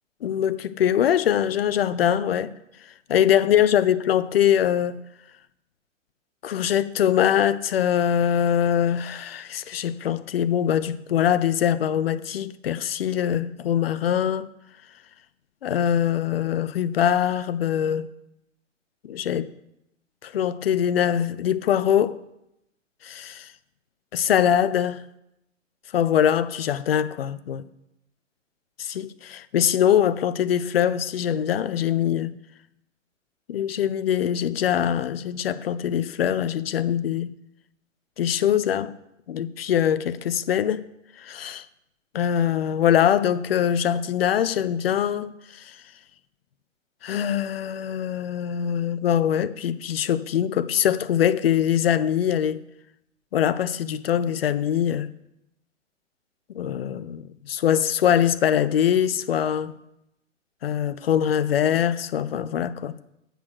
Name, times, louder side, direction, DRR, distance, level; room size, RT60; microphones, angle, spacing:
voice 1, 0.2-2.5 3.1-5.0 6.4-14.5 15.6-18.1 19.0-19.5 20.2-22.2 23.0-23.5 24.1-25.0 25.9-27.6 28.9-32.3 33.5-37.3 38.2-38.9 39.3-40.8 41.2-41.6 42.1-45.6 47.0-52.6 53.3-55.1 56.5-59.7 60.6-62.9, left 9 dB, 50° left, 0.5 m, -23 dB
8.0 x 6.4 x 6.2 m
figure-of-eight pair, 115°, 39 cm